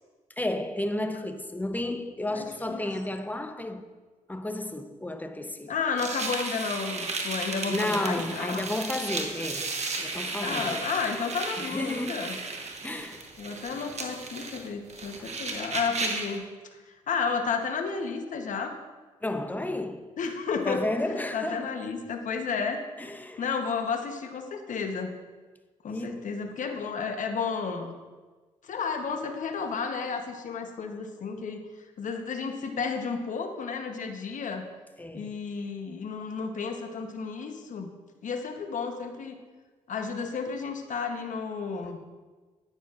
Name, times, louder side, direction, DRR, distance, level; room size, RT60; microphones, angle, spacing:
voice 1, 0.4-3.8 4.3-5.8 7.7-10.8 11.6-12.3 12.8-13.3 15.2-15.3 19.2-20.1 20.6-21.7 23.0-23.4 25.9-26.3 35.0-35.4, left 1 dB, 10° left, 0.9 m, -32 dB
voice 2, 2.3-2.8 5.7-8.6 10.4-12.4 13.4-16.4 16.7-18.8 20.2-20.8 21.1-22.8 23.4-25.2 25.8-27.9 28.6-31.6 32.0-34.7 35.1-37.9 38.2-39.4 39.9-42.0, left 5 dB, 60° left, 1.1 m, -32 dB
sound 1, 6.0-16.4, right 3 dB, 45° right, 1.3 m, -34 dB
10.5 x 9.2 x 2.5 m
supercardioid pair, 55°, 15 cm